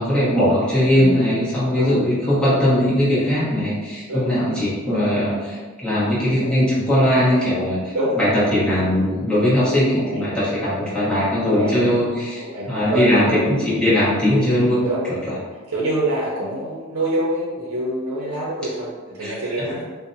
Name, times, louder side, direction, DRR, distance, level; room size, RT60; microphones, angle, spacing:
voice 1, 0.0-15.3 19.2-19.6, left 1 dB, 5° left, -11 dB, 1.0 m, -20 dB
voice 2, 1.0-1.3 1.8-2.0 2.4-2.5 4.1-4.4 6.4-6.7 7.9-8.1 9.9-10.2 11.4-11.8 12.4-13.7 14.8-15.0 15.7-19.8, right 1 dB, 70° right, -6 dB, 0.6 m, -26 dB
4.2 x 2.1 x 2.6 m, 1.4 s
head